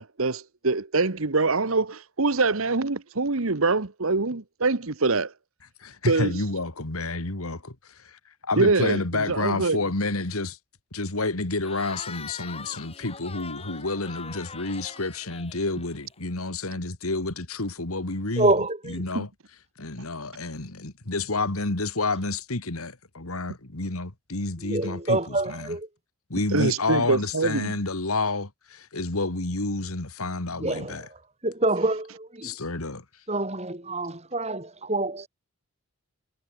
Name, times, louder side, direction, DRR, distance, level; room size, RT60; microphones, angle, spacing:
voice 1, 0.0-5.3 6.1-6.4 8.6-9.8 19.1-19.2 26.5-27.7, right 3 dB, 70° right, 1.3 m, -24 dB
voice 2, 5.8-10.6 10.9-18.5 18.9-19.3 19.8-25.2 25.5-25.8 26.3-31.1 32.4-33.0, left 2 dB, 80° left, 2.4 m, -29 dB
Cheering / Crowd, 11.6-16.2, left 5 dB, 25° left, 8.0 m, -42 dB
voice 3, 18.4-19.0 24.6-25.9 30.6-32.5 33.3-35.3, right 2 dB, 30° right, 3.7 m, -27 dB
head